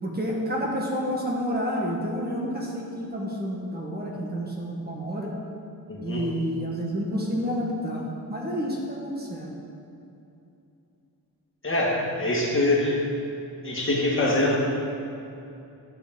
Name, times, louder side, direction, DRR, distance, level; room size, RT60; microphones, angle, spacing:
voice 1, 0.0-5.3 6.0-9.6, equal, 25° right, -3 dB, 1.3 m, -29 dB
voice 2, 5.9-6.3 11.6-13.0 13.6-14.6, left 1 dB, 35° left, -3 dB, 1.8 m, -24 dB
13.0 x 6.3 x 3.7 m, 2.8 s
wide cardioid pair, 125°, 38 cm